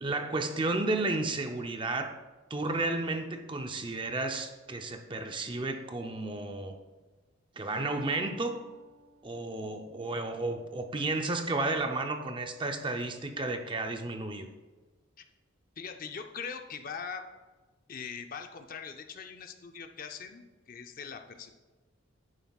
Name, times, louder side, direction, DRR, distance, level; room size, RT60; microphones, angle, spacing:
voice 1, 0.0-2.2 2.5-6.7 7.6-8.6 9.2-14.5, right 2 dB, 25° right, 5 dB, 0.5 m, -32 dB
Harp, 7.8-11.5 12.1-12.5 13.1-13.2, right 3 dB, 85° right, 0.9 m, -53 dB
voice 2, 15.8-17.3 17.9-21.5, left 6 dB, 40° left, 6 dB, 0.5 m, -41 dB
10.5 x 9.3 x 2.4 m, 1.3 s
head